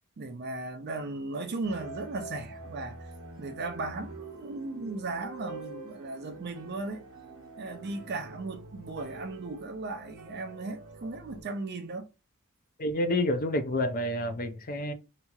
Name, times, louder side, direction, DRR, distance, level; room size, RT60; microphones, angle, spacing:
voice 1, 0.2-3.0 3.4-7.0 7.6-12.1, right 3 dB, 45° right, 0.5 m, -36 dB
sound 1, 1.6-11.4, right 2 dB, 65° right, 0.9 m, -46 dB
voice 2, 12.8-14.9, left 1 dB, 40° left, 0.4 m, -29 dB
2.9 x 2.8 x 2.3 m
head